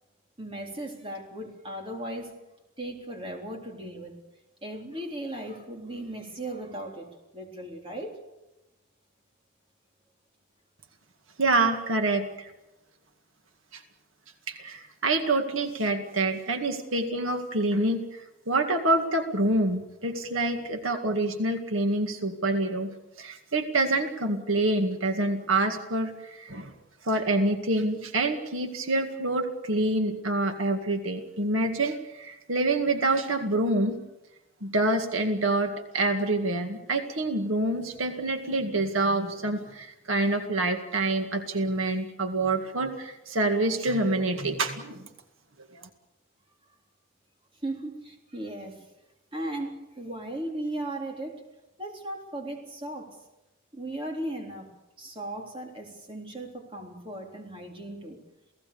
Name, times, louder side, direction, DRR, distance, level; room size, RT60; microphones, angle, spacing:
voice 1, 0.4-2.3 2.8-4.2 4.6-7.1 7.3-8.1 47.6-48.9 49.3-51.4 51.8-53.2 53.7-54.7 55.0-58.2, right 1 dB, 25° right, 1 dB, 3.8 m, -37 dB
voice 2, 11.4-12.5 13.7-13.8 14.5-26.7 27.0-34.0 34.6-45.0 45.7-45.9, right 2 dB, 80° right, 5 dB, 2.1 m, -27 dB
28.5 x 17.5 x 7.0 m, 0.97 s
head